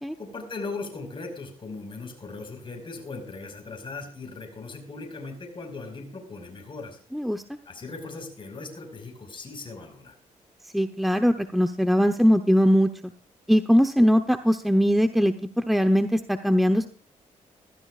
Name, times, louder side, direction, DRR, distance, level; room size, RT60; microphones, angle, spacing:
voice 1, 0.2-7.0 7.7-10.1, left 3 dB, 35° left, 2 dB, 5.2 m, -38 dB
voice 2, 7.1-7.4 10.7-12.9 13.5-16.9, equal, ahead, 8 dB, 0.9 m, -21 dB
20.0 x 14.5 x 2.5 m, 0.41 s
cardioid pair, 70°, 14 cm